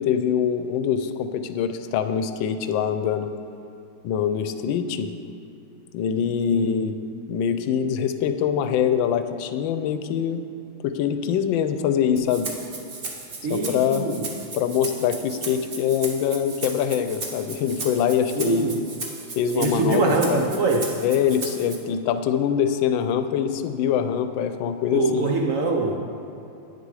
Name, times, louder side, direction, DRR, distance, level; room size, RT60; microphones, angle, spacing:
voice 1, 0.0-3.3 4.0-5.1 5.9-6.9 7.3-10.4 10.8-12.5 13.5-14.0 14.5-18.6 19.4-20.0 20.3-20.4 21.0-25.2, left 8 dB, 90° left, 9 dB, 1.3 m, -24 dB
Rattle (instrument), 12.2-21.8, right 3 dB, 40° right, 1.0 m, -36 dB
voice 2, 13.4-14.3 18.3-18.8 19.5-21.0 24.9-26.0, right 3 dB, 65° right, 1 dB, 0.8 m, -23 dB
9.5 x 6.8 x 4.8 m, 2.8 s
omnidirectional pair, 2.0 m